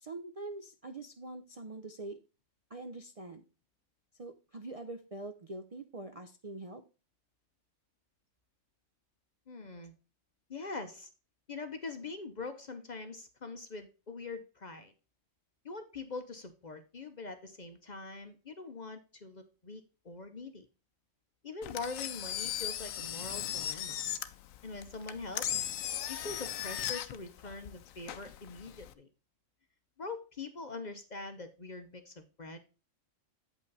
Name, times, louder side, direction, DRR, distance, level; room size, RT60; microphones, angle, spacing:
voice 1, 0.0-2.2 2.7-3.4 4.2-6.8, right 2 dB, 40° right, 4 dB, 0.5 m, -44 dB
voice 2, 9.5-9.9 10.5-11.1 11.5-14.9 15.6-20.7 21.4-24.0 24.6-25.7 26.1-29.1 30.0-32.6, left 3 dB, 40° left, 8 dB, 0.7 m, -43 dB
Engine, 21.6-28.9, left 11 dB, 90° left, 1.0 m, -38 dB
8.2 x 5.5 x 4.0 m, 0.32 s
omnidirectional pair, 1.3 m